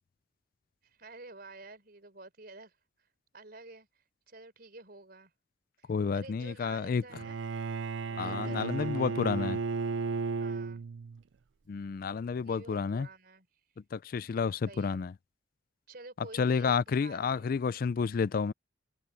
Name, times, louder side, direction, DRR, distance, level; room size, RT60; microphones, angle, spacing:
voice 1, 0.8-2.8 3.3-5.3 5.8-7.4 8.2-9.2 10.4-10.8 12.4-13.5 14.7-15.0 15.9-17.6, right 3 dB, 55° right, 4.3 m, -50 dB
voice 2, 5.9-7.0 8.2-9.6 11.7-13.1 13.9-15.1 16.3-18.5, left 5 dB, 50° left, 0.4 m, -30 dB
Bowed string instrument, 7.1-11.2, right 4 dB, 90° right, 0.5 m, -34 dB
head